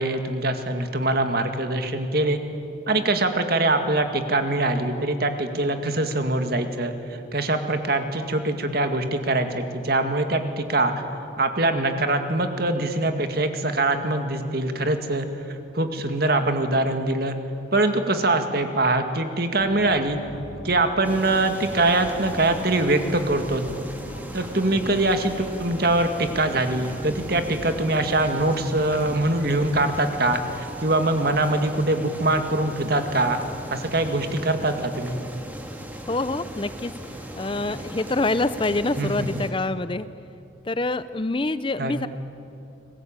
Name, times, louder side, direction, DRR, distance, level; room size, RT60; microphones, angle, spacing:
voice 1, 0.0-2.4 2.9-6.9 7.3-10.9 11.4-15.3 15.7-17.4 17.7-20.2 20.6-23.6 24.3-33.4 33.7-35.2 39.0-39.4 41.8-41.9, right 2 dB, 50° right, 7 dB, 2.1 m, -23 dB
sound 1, 19.6-26.5, left 1 dB, 75° left, 2.0 m, -43 dB
sound 2, 21.0-39.5, equal, 10° right, 2.3 m, -38 dB
voice 2, 36.1-36.9 37.4-40.1 40.7-42.1, left 2 dB, 25° left, 14 dB, 0.5 m, -26 dB
29.5 x 21.0 x 8.9 m, 2.7 s
head